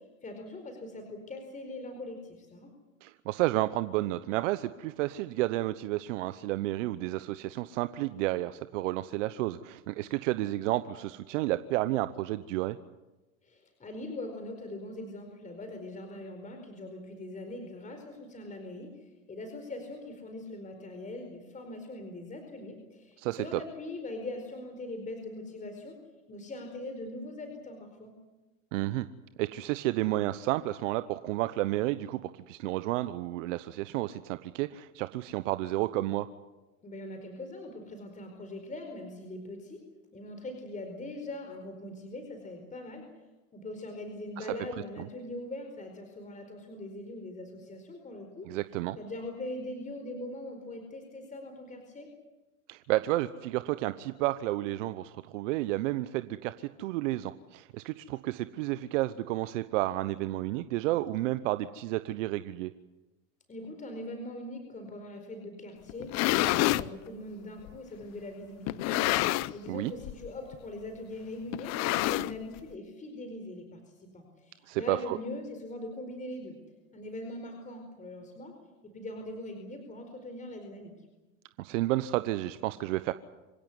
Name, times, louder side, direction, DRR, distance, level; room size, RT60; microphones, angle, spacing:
voice 1, 0.2-2.7 13.4-26.0 26.3-28.1 36.8-39.8 40.1-43.1 43.5-48.5 48.9-52.1 63.5-76.6 76.9-78.5 78.8-80.9, left 1 dB, 20° left, 5 dB, 4.6 m, -41 dB
voice 2, 3.0-12.8 23.2-23.6 28.7-29.1 29.4-36.3 44.4-44.5 48.5-49.0 52.7-62.7 69.7-69.9 74.7-75.2 81.6-83.1, right 16 dB, 65° right, 12 dB, 1.0 m, -31 dB
sound 1, 65.9-66.9 67.7-67.8 68.7-69.7 70.0-70.3 70.5-70.6 71.5-72.6, left 18 dB, 40° left, 0.8 m, -28 dB
26.0 x 16.5 x 9.7 m, 1.1 s
hypercardioid pair, 110°, 41 cm